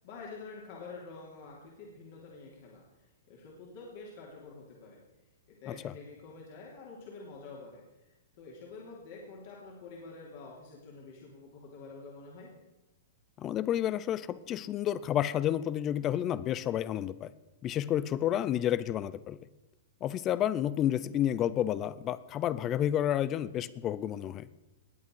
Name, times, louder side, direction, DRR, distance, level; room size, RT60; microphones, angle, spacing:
voice 1, 0.0-5.0 5.6-12.5, left 4 dB, 55° left, -3 dB, 3.4 m, -48 dB
voice 2, 13.4-17.3 17.6-19.4 20.0-24.5, left 11 dB, 30° left, 18 dB, 0.6 m, -30 dB
20.0 x 8.2 x 4.8 m, 1.0 s
hypercardioid pair, 115°, 0 cm